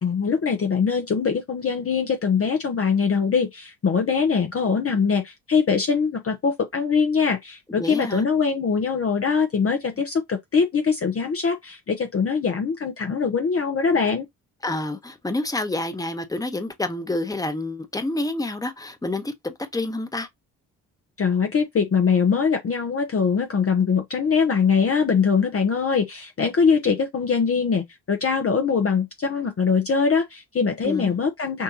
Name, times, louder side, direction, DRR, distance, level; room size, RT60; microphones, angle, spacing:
voice 1, 0.0-14.3 21.2-31.6, left 5 dB, 30° left, 0.9 m, -22 dB
voice 2, 7.7-8.3 14.6-20.3 30.8-31.2, left 2 dB, 5° left, 1.1 m, -28 dB
6.2 x 2.6 x 2.8 m
figure-of-eight pair, 45°, 48 cm